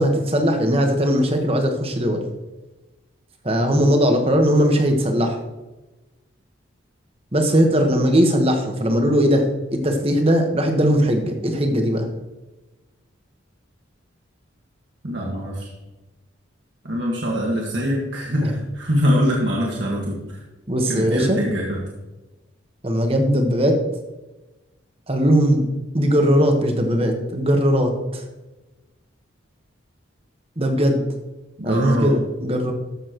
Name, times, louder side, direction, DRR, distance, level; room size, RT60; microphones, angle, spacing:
voice 1, 0.0-2.2 3.4-5.4 7.3-9.5 9.7-12.1 18.4-18.5 20.7-21.4 22.8-23.8 25.1-25.7 25.9-28.2 30.6-31.0 31.6-32.7, equal, 30° right, 4 dB, 1.4 m, -19 dB
voice 2, 15.0-15.7 16.8-20.4 20.9-21.8 31.6-32.1, equal, 65° right, -3 dB, 1.8 m, -23 dB
13.5 x 7.4 x 3.1 m, 1.1 s
head